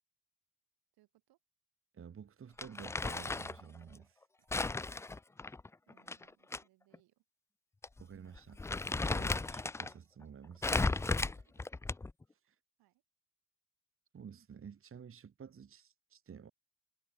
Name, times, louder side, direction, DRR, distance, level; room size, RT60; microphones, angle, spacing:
voice 1, 0.9-1.4 4.4-4.5 5.9-7.2 10.9-11.7 12.4-13.0, right 17 dB, 75° right, 7.6 m, -70 dB
voice 2, 1.9-4.2 8.0-8.6 8.9-10.9 12.3-12.6 14.1-16.5, right 7 dB, 35° right, 2.4 m, -52 dB
Crumpling crinkling, 2.6-3.6 4.5-6.6 6.9-7.0 7.8-8.0 8.4-9.9 10.6-12.2, left 3 dB, 10° left, 0.3 m, -35 dB
cardioid pair, 100°, 37 cm